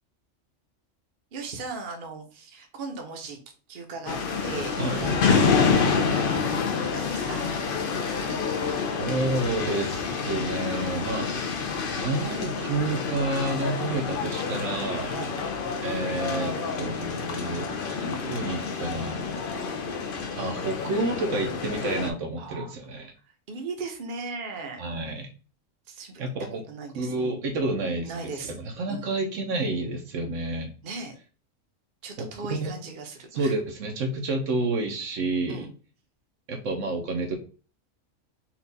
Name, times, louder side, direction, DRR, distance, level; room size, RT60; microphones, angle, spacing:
voice 1, 1.3-3.4 3.7-7.5 15.1-15.3 22.4-22.7 23.2-24.8 25.9-26.2 26.7-27.4 28.0-28.6 28.9-29.1 30.8-31.2 32.0-33.6 35.5-35.7, right 3 dB, 45° right, 3 dB, 0.9 m, -38 dB
sound 1, 4.1-22.1, left 5 dB, 50° left, 0.7 m, -28 dB
voice 2, 9.0-11.3 11.9-15.1 15.8-17.7 18.0-19.4 20.4-23.1 24.8-25.3 26.2-26.6 26.9-28.1 28.5-30.7 32.2-32.7 33.3-35.7 36.5-37.4, right 2 dB, 70° right, 4 dB, 1.1 m, -29 dB
4.4 x 2.4 x 4.0 m, 0.37 s
omnidirectional pair, 1.4 m